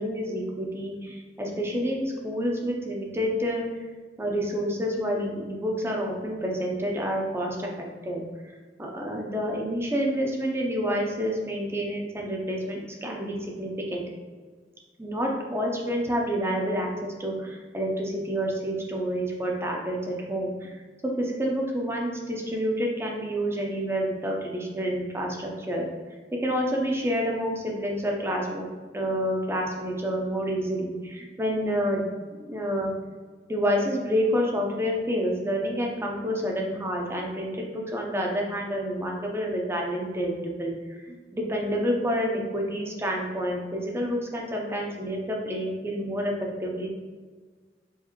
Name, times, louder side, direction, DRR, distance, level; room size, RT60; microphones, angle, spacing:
voice 1, 0.0-3.6 4.2-8.2 8.8-14.0 15.0-20.7 21.0-25.9 26.4-28.7 28.9-32.1 32.3-32.9 33.5-41.0 41.3-46.3 46.6-46.9, equal, 15° right, 0 dB, 0.5 m, -28 dB
4.6 x 2.5 x 3.0 m, 1.4 s
head